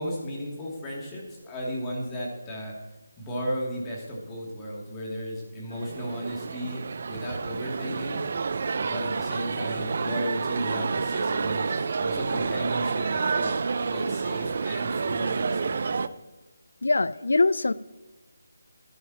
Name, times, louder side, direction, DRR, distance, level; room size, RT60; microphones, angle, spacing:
voice 1, 0.0-2.7 3.2-8.2 8.8-13.6 13.9-16.0, equal, 15° left, -3 dB, 2.6 m, -34 dB
sound 1, 5.7-16.1, right 5 dB, 50° right, 0.5 m, -29 dB
voice 2, 16.8-17.7, left 3 dB, 75° left, 17 dB, 0.5 m, -22 dB
12.5 x 11.0 x 2.9 m, 1.2 s
figure-of-eight pair, 160°, 0 cm